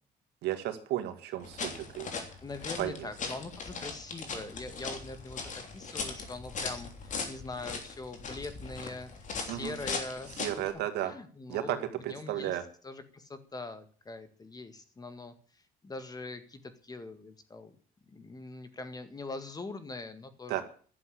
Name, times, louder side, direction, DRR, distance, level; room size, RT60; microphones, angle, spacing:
voice 1, 0.4-2.3 2.8-3.1 9.5-9.7 10.4-11.1 11.5-11.8 12.0-12.6 20.5-20.6, right 13 dB, 80° right, 7 dB, 2.1 m, -33 dB
sound 1, 1.4-10.7, left 4 dB, 45° left, 3.2 m, -39 dB
voice 2, 2.4-9.1 9.4-10.4 11.0-12.6 12.8-17.7 18.1-20.6, left 3 dB, 20° left, 10 dB, 1.9 m, -43 dB
11.5 x 7.8 x 10.0 m, 0.43 s
cardioid pair, 110°, 17 cm